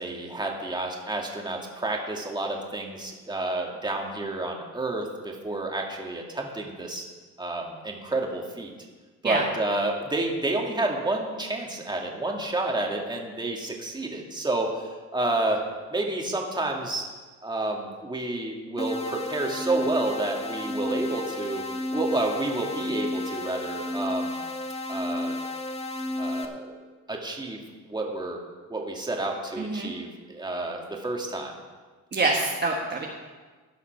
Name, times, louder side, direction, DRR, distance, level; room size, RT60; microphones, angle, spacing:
voice 1, 0.0-7.0 7.4-8.7 9.2-15.6 15.9-17.0 17.4-21.6 21.9-24.4 24.9-25.4 26.2-26.8 27.1-28.4 28.7-31.5, right 2 dB, 15° right, 0 dB, 2.1 m, -30 dB
sound 1, 18.8-26.5, left 1 dB, 20° left, 1.1 m, -32 dB
voice 2, 29.6-29.9 32.1-33.1, right 3 dB, 35° right, -1 dB, 1.4 m, -26 dB
15.5 x 5.7 x 5.9 m, 1.4 s
cardioid pair, 90°, 30 cm